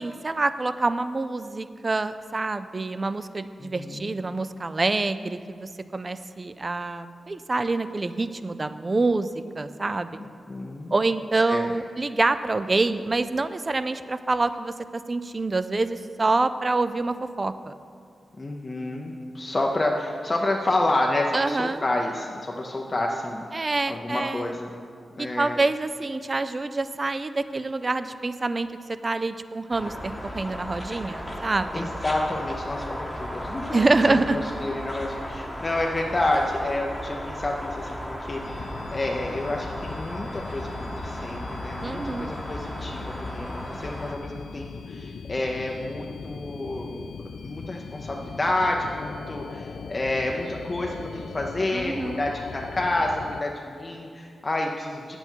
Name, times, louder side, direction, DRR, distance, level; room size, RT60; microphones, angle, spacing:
voice 1, 0.0-10.2 10.9-14.7 15.1-17.7 21.3-21.8 23.5-24.5 25.2-28.7 29.0-31.8 33.7-34.4 41.8-42.3 51.7-52.3, right 3 dB, 25° right, 12 dB, 0.3 m, -26 dB
voice 2, 3.6-4.1 10.5-10.9 11.5-11.7 18.4-24.8 25.2-25.6 31.7-47.1 47.4-55.2, left 2 dB, 25° left, 0 dB, 0.6 m, -29 dB
sound 1, 29.7-44.2, equal, ahead, 1.0 m, -35 dB
sound 2, 38.4-53.4, left 6 dB, 80° left, 0.3 m, -39 dB
9.4 x 7.8 x 4.5 m, 2.3 s
wide cardioid pair, 150°, 0 cm